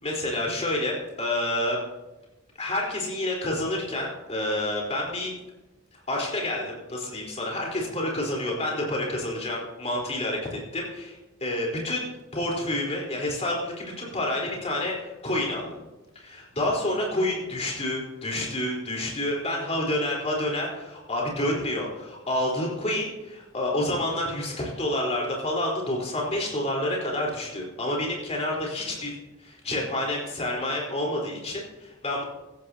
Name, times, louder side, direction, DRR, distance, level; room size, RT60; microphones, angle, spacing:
voice 1, 0.0-1.8 2.6-5.4 6.1-12.0 12.3-15.7 16.2-29.1 29.4-32.2, left 1 dB, 30° left, -2 dB, 4.0 m, -29 dB
16.0 x 14.5 x 2.8 m, 1.0 s
head